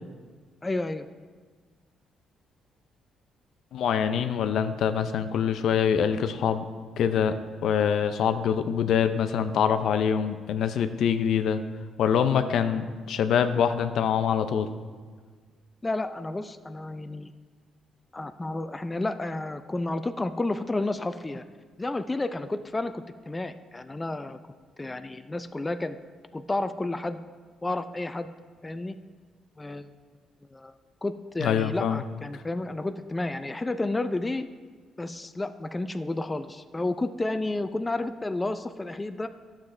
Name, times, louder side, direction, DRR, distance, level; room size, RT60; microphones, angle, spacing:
voice 1, 0.6-1.1 15.8-17.3 18.1-21.4 21.8-24.4 24.8-26.0 26.3-27.2 27.6-28.3 28.6-29.0 29.6-29.9 30.5-34.5 35.0-39.3, left 2 dB, 20° left, 9 dB, 0.4 m, -31 dB
voice 2, 3.7-6.6 7.0-7.4 7.6-11.6 12.0-14.7 31.4-32.0, left 8 dB, 75° left, 9 dB, 0.5 m, -24 dB
11.5 x 7.2 x 3.2 m, 1.5 s
cardioid pair, 90°, 0 cm